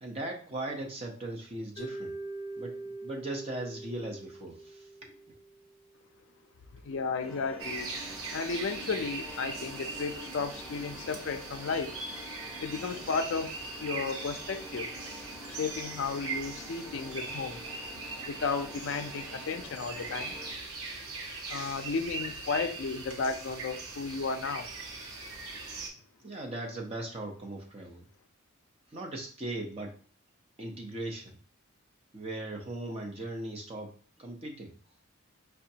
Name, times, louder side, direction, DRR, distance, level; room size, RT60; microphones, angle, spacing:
voice 1, 0.0-2.1 2.6-2.8 3.0-5.4 21.3-21.7 26.2-28.1 28.9-29.9 30.6-31.4 32.1-34.7, right 1 dB, 25° right, 0.7 m, -39 dB
Mallet percussion, 1.8-5.9, right 2 dB, 30° left, 0.8 m, -43 dB
voice 2, 6.8-7.9 8.3-12.0 12.6-14.9 15.5-17.6 18.3-20.4 21.5-24.7, left 4 dB, 55° left, 0.4 m, -34 dB
sound 1, 7.2-20.5, left 1 dB, 5° right, 1.1 m, -47 dB
sound 2, 7.6-25.9, right 3 dB, 70° right, 0.9 m, -41 dB
5.0 x 2.2 x 2.7 m
head